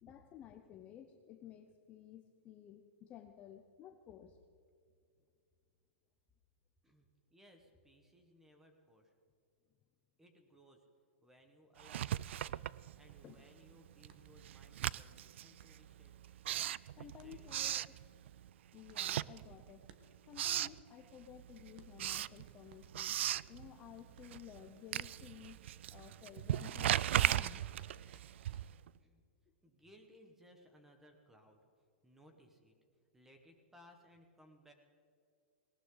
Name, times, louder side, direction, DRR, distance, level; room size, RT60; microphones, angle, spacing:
voice 1, 0.0-4.4 13.2-13.4 17.0-17.8 18.7-19.9 20.3-23.2 23.5-25.6 25.9-27.6, left 10 dB, 20° left, 6 dB, 0.6 m, -54 dB
voice 2, 6.8-9.1 10.2-10.8 11.2-12.1 12.4-12.6 12.9-16.1 16.9-17.5 29.0-29.2 29.6-31.6 32.0-32.7 33.1-34.7, equal, 5° right, 4 dB, 1.4 m, -63 dB
Writing, 11.8-13.4 13.7-18.5 18.9-19.9 20.1-20.8 21.2-28.9, right 12 dB, 70° right, 0.3 m, -38 dB
sound 1, 14.1-29.2, right 7 dB, 45° right, 1.2 m, -65 dB
18.5 x 18.5 x 3.9 m, 2.3 s
supercardioid pair, 165°, 7 cm